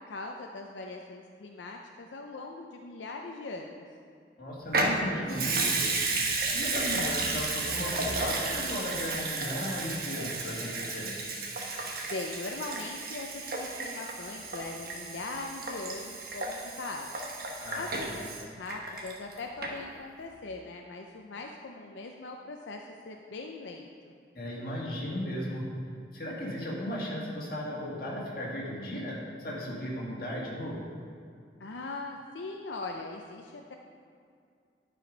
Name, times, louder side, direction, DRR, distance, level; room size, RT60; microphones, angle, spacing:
voice 1, 0.1-3.8 6.6-7.2 12.1-17.1 17.7-24.1 31.6-33.8, left 3 dB, 90° left, 2 dB, 0.6 m, -40 dB
voice 2, 4.4-5.9 6.5-11.1 17.6-18.1 24.3-25.7 26.1-30.9, equal, 55° left, -4 dB, 2.0 m, -36 dB
Water tap faucet / Sink (filling or washing) / Liquid, 4.7-19.3 19.6-19.7, right 3 dB, 55° right, 1.1 m, -33 dB
10.5 x 5.0 x 5.1 m, 2.3 s
head